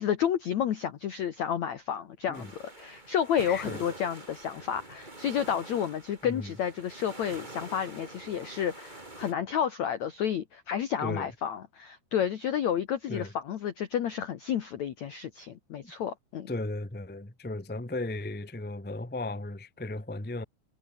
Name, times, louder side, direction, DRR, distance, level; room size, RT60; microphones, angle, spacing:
voice 1, 0.0-16.5, left 9 dB, 85° left, 1.6 m, -31 dB
sound 1, 2.3-9.3, right 2 dB, 10° right, 2.8 m, -46 dB
voice 2, 3.5-3.8 6.2-6.5 11.0-11.3 13.1-13.3 15.8-15.9 16.5-20.4, left 2 dB, 15° left, 0.3 m, -36 dB
omnidirectional pair, 5.4 m